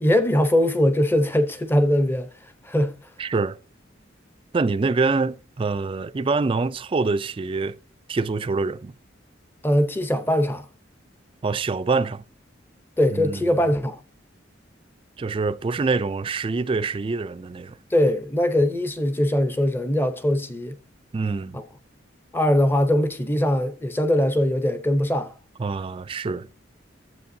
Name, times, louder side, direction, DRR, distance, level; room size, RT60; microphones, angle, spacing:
voice 1, 0.0-2.3 2.6-2.9 9.6-10.6 13.0-14.0 17.9-20.8 21.5-21.6 22.3-25.3, left 1 dB, 10° left, 0.7 m, -21 dB
voice 2, 3.2-3.6 4.5-7.8 8.1-8.9 11.4-12.2 13.1-13.6 15.2-17.8 21.1-21.6 25.6-26.5, right 4 dB, 25° right, 0.3 m, -25 dB
12.0 x 7.8 x 2.7 m
head